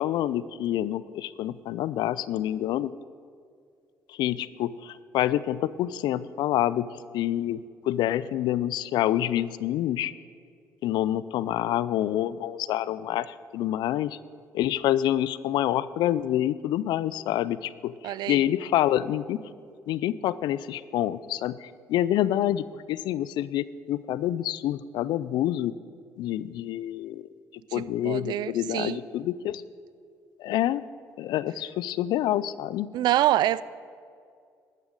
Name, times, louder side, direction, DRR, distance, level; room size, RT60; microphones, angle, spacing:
voice 1, 0.0-2.9 4.1-6.9 7.1-7.6 7.8-10.1 10.8-14.2 14.5-19.4 19.9-25.7 26.2-27.3 27.7-29.6 30.4-30.8 31.2-32.9, left 12 dB, 70° left, 18 dB, 0.4 m, -27 dB
voice 2, 18.0-18.4 27.7-29.0 32.9-33.6, right 13 dB, 70° right, 19 dB, 0.4 m, -26 dB
13.0 x 9.2 x 6.6 m, 2.2 s
supercardioid pair, 60°, 8 cm